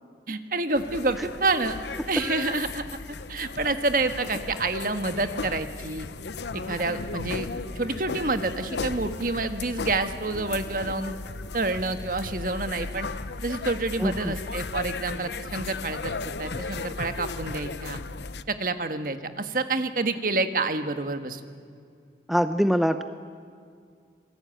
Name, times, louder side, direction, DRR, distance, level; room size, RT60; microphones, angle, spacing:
voice 1, 0.3-1.8 2.1-2.8 3.3-6.1 6.5-7.5 7.8-11.2 11.5-13.1 13.4-18.0 18.5-21.4, right 3 dB, 50° right, 8 dB, 1.6 m, -28 dB
sound 1, 0.8-18.4, left 3 dB, 75° left, 0.8 m, -35 dB
voice 2, 14.0-14.3 22.3-23.0, equal, ahead, 9 dB, 0.6 m, -24 dB
27.0 x 22.0 x 9.2 m, 2.2 s
head